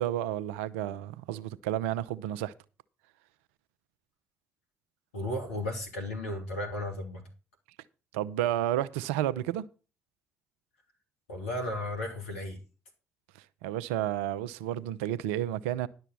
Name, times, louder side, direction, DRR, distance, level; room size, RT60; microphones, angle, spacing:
voice 1, 0.0-2.5 8.1-9.6 13.6-15.9, right 12 dB, 80° right, 0.6 m, -31 dB
voice 2, 5.1-7.2 11.3-12.6, left 1 dB, 90° left, 2.5 m, -34 dB
11.0 x 6.7 x 6.1 m
hypercardioid pair, 45°, 7 cm